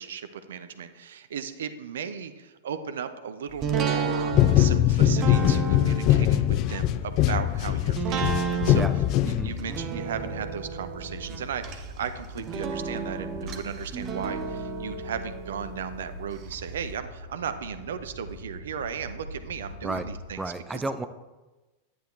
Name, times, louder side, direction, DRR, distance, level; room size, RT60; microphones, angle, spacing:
voice 1, 0.0-8.9 9.3-20.4 20.7-20.8, right 7 dB, 60° right, 11 dB, 0.7 m, -36 dB
sound 1, 3.6-16.5 16.9-17.0, right 6 dB, 35° right, 1.0 m, -33 dB
sound 2, 4.3-9.8, left 13 dB, 40° left, 0.4 m, -22 dB
voice 2, 9.2-9.5 19.8-20.1 20.4-21.1, right 2 dB, 10° right, 10 dB, 0.6 m, -32 dB
sound 3, 9.4-20.3, equal, 70° left, 3.6 m, -43 dB
10.0 x 9.9 x 3.2 m, 1.1 s
figure-of-eight pair, 90°, 0 cm